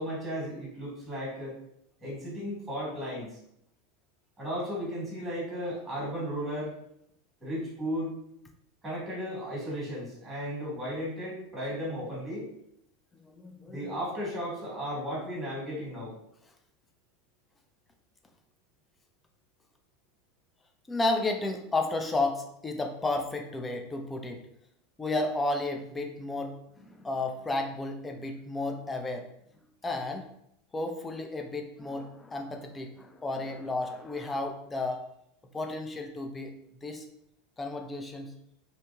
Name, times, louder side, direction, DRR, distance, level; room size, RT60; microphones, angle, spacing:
voice 1, 0.0-1.6 2.0-3.4 4.4-6.7 7.4-8.1 8.8-12.5 13.7-16.2, equal, 10° right, -6 dB, 1.4 m, -35 dB
voice 2, 13.1-14.0 20.9-24.4 25.0-29.3 29.8-30.3 30.7-35.0 35.5-36.5 36.8-37.0 37.6-38.3, left 2 dB, 15° left, 4 dB, 0.4 m, -32 dB
2.8 x 2.7 x 2.2 m, 0.73 s
supercardioid pair, 120°, 0 cm